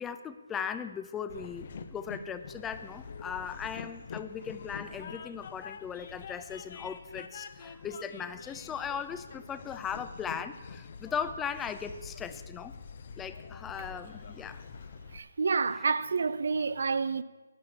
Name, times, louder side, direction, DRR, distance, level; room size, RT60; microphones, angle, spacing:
voice 1, 0.0-12.7 13.2-14.6, left 7 dB, 10° left, 0.5 m, -38 dB
Train, 1.3-15.2, left 5 dB, 50° left, 0.8 m, -46 dB
voice 2, 15.1-17.2, right 4 dB, 65° right, 0.5 m, -29 dB
11.5 x 8.2 x 7.1 m
figure-of-eight pair, 150°, 0 cm